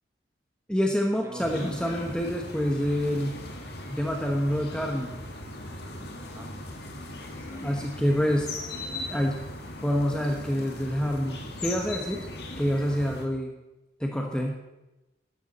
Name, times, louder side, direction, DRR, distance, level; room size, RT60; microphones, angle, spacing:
voice 1, 0.7-3.4 3.9-5.1 7.6-8.5 9.1-9.4 9.8-12.2 12.6-13.5 14.0-14.6, equal, 5° left, 1 dB, 1.0 m, -27 dB
voice 2, 1.2-2.1 6.2-6.6 7.3-8.1, equal, 15° right, 3 dB, 1.3 m, -44 dB
sound 1, 1.4-13.3, left 2 dB, 60° left, 1.9 m, -39 dB
12.5 x 11.5 x 4.2 m, 1.0 s
head